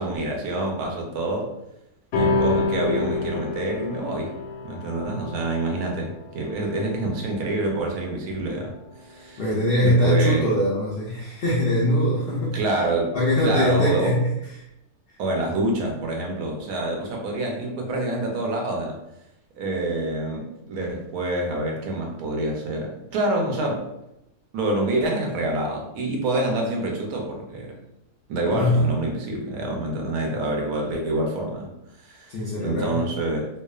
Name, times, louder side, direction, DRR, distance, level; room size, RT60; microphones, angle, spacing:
voice 1, 0.0-1.5 2.1-4.3 4.6-8.7 9.0-9.4 9.8-10.5 12.5-13.2 13.4-14.2 15.2-19.0 19.6-23.9 24.5-27.7 28.3-31.7 32.0-33.5, right 2 dB, 80° right, 1 dB, 1.1 m, -27 dB
sound 1, 2.1-8.9, left 3 dB, 90° left, 1.1 m, -28 dB
voice 2, 9.4-12.6 13.1-14.3 15.1-15.2 28.6-28.8 32.3-33.0, left 1 dB, 75° left, -5 dB, 0.5 m, -22 dB
2.8 x 2.0 x 2.3 m, 0.87 s
omnidirectional pair, 1.6 m